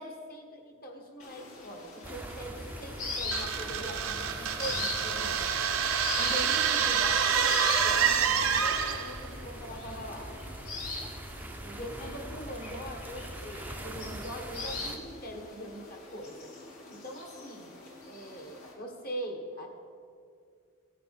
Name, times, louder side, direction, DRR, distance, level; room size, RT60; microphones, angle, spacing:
voice 1, 0.0-10.3 11.6-16.5 16.9-17.7 18.0-19.7, equal, 40° left, 2 dB, 1.6 m, -42 dB
sound 1, 1.2-18.7, left 3 dB, 90° left, 2.3 m, -42 dB
sound 2, 2.0-15.0, right 1 dB, 10° right, 0.6 m, -43 dB
sound 3, 3.3-9.2, right 7 dB, 80° right, 0.9 m, -27 dB
16.0 x 9.3 x 4.3 m, 2.3 s
head